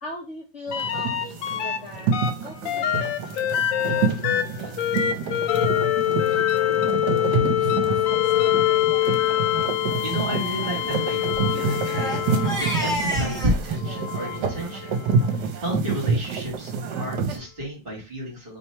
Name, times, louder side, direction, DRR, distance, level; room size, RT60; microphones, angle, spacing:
voice 1, 0.0-3.4 3.9-4.7, left 1 dB, 50° left, -2 dB, 1.0 m, -40 dB
sound 1, 0.7-1.8 2.1-12.9 13.7-15.3 17.0-17.1, left 12 dB, 85° left, 0.7 m, -25 dB
sound 2, 0.7-17.4, right 5 dB, 70° right, 1.3 m, -28 dB
Crying sobbing, 6.7-6.9 7.6-7.7 8.0-8.1 8.4-8.7 9.1-9.3 10.5-13.6, equal, ahead, 1.5 m, -32 dB
voice 2, 10.0-14.9 15.3-16.7 17.0-18.6, equal, 30° right, -2 dB, 1.7 m, -31 dB
3.3 x 2.8 x 4.3 m, 0.28 s
omnidirectional pair, 2.0 m